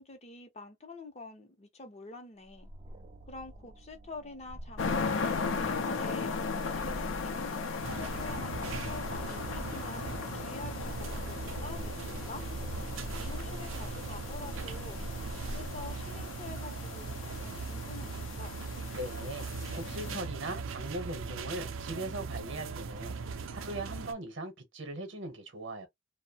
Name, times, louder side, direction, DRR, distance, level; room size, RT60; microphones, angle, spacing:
voice 1, 0.0-2.7 3.3-10.0 10.3-12.4 13.1-18.6, left 3 dB, 35° left, 0.6 m, -47 dB
sound 1, 2.5-17.0, equal, 30° right, 0.4 m, -45 dB
sound 2, 4.8-20.2, left 5 dB, 80° left, 0.5 m, -37 dB
sound 3, 7.8-24.1, right 4 dB, 90° right, 0.4 m, -40 dB
voice 2, 18.9-19.5 19.7-25.9, right 1 dB, 65° right, 0.8 m, -40 dB
2.7 x 2.0 x 2.7 m
head